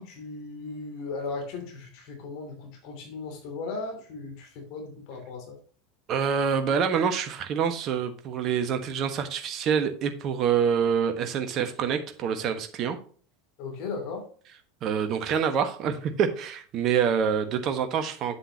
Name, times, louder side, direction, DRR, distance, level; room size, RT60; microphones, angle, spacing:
voice 1, 0.0-5.6 13.6-14.3, left 4 dB, 50° left, 3 dB, 2.7 m, -37 dB
voice 2, 6.1-13.0 14.8-18.4, right 7 dB, 40° right, 7 dB, 1.3 m, -26 dB
8.4 x 7.6 x 2.9 m, 0.43 s
figure-of-eight pair, 80°, 0 cm